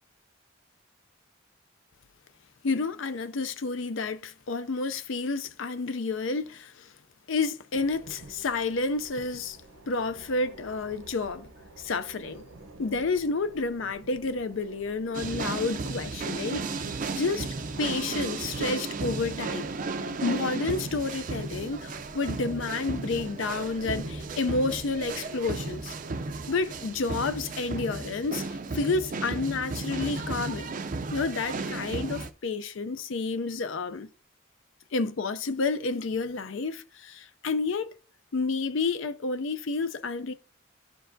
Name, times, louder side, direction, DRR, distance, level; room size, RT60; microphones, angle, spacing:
voice 1, 2.6-6.9 7.3-9.6 9.9-11.5 11.8-12.4 12.8-16.9 17.1-19.7 20.2-25.9 26.5-30.8 31.1-34.1 34.9-38.0 38.3-40.3, left 3 dB, 65° left, 0.5 m, -30 dB
sound 1, 7.7-27.3, right 2 dB, 80° right, 0.8 m, -50 dB
sound 2, 15.1-32.3, right 3 dB, 40° right, 0.4 m, -34 dB
12.0 x 4.5 x 2.6 m
head